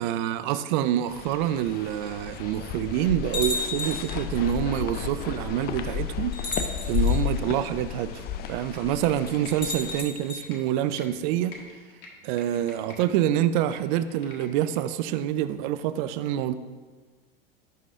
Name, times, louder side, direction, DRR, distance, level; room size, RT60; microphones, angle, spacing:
voice 1, 0.0-11.6 12.2-16.5, right 11 dB, 50° right, 0.4 m, -27 dB
sound 1, 1.1-10.0, left 9 dB, 30° left, 0.5 m, -32 dB
sound 2, 3.3-4.2 5.3-5.4 6.3-7.2 9.5-10.4, left 2 dB, 85° left, 1.9 m, -32 dB
Computer keyboard, 8.3-11.1 11.4-13.1 13.4-14.8 15.2-15.3, left 3 dB, 50° left, 1.5 m, -48 dB
11.0 x 3.9 x 3.6 m
hypercardioid pair, 95°, 30 cm